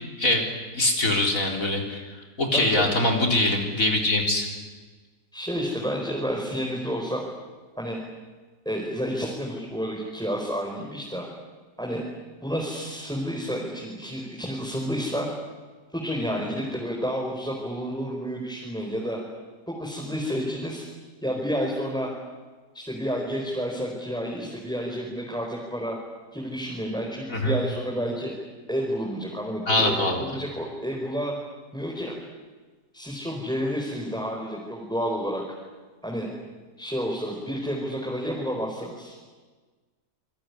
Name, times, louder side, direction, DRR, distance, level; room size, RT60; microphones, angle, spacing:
voice 1, 0.7-2.0 2.4-4.5 27.3-27.6 29.7-30.2, left 1 dB, 50° left, 1 dB, 4.4 m, -23 dB
voice 2, 2.5-2.9 5.3-7.2 7.8-8.0 8.6-11.3 11.8-12.0 12.4-15.3 15.9-19.2 19.7-20.8 21.2-22.1 22.7-26.0 26.3-28.3 28.7-30.0 30.3-31.3 31.7-32.1 32.9-35.4 36.0-36.3 36.8-39.2, equal, ahead, -2 dB, 5.0 m, -30 dB
27.5 x 22.0 x 9.9 m, 1.4 s
omnidirectional pair, 1.8 m